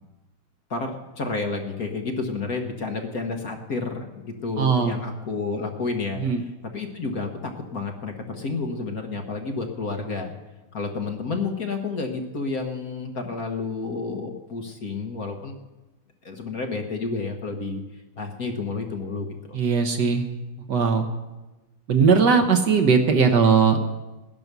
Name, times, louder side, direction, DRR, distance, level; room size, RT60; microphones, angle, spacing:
voice 1, 0.7-10.3 10.7-15.6 16.2-19.6, left 4 dB, 45° left, 3 dB, 1.5 m, -30 dB
voice 2, 4.6-4.9 6.2-6.4 19.5-20.2 20.7-21.1 21.9-23.8, right 5 dB, 60° right, 6 dB, 1.6 m, -19 dB
17.0 x 11.0 x 6.8 m, 1.1 s
omnidirectional pair, 2.4 m